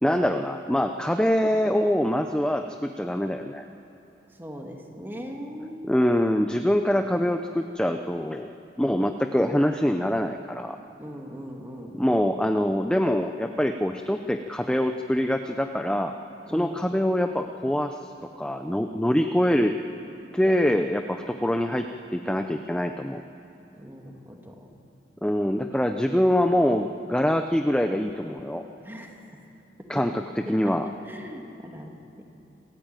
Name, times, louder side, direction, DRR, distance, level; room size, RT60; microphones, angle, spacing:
voice 1, 0.0-3.7 5.9-8.5 8.8-10.8 12.0-16.1 16.5-18.0 18.4-19.8 20.3-21.9 22.1-23.2 25.2-28.6 29.9-30.1 30.5-30.8, equal, 5° left, 6 dB, 0.5 m, -24 dB
voice 2, 4.3-6.0 8.8-9.0 11.0-12.1 16.5-16.8 23.7-24.7 26.1-26.2 28.8-29.4 29.9-30.0 30.5-30.8 31.0-32.2, equal, 10° right, 2 dB, 2.2 m, -40 dB
27.5 x 13.5 x 9.1 m, 2.9 s
head